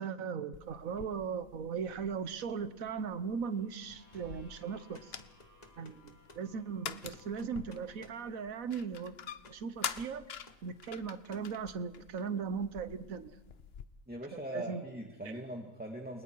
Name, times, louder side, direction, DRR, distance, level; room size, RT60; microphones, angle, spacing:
voice 1, 0.0-5.2 5.8-9.1 9.5-10.3 10.6-13.4 14.5-14.8, right 6 dB, 80° right, 12 dB, 1.5 m, -38 dB
sound 1, 0.5-13.9, left 7 dB, 50° left, 1.0 m, -47 dB
sound 2, 3.2-9.0, left 2 dB, 85° left, 6.0 m, -65 dB
sound 3, 3.9-4.4 4.9-6.5 7.0-8.3 9.4-9.6 10.0-10.2 10.5-10.6 11.3-11.5, left 2 dB, 30° left, 1.8 m, -57 dB
voice 2, 14.1-16.2, right 1 dB, 5° right, 1 dB, 2.0 m, -41 dB
29.0 x 23.5 x 4.7 m, 1.0 s
omnidirectional pair, 1.4 m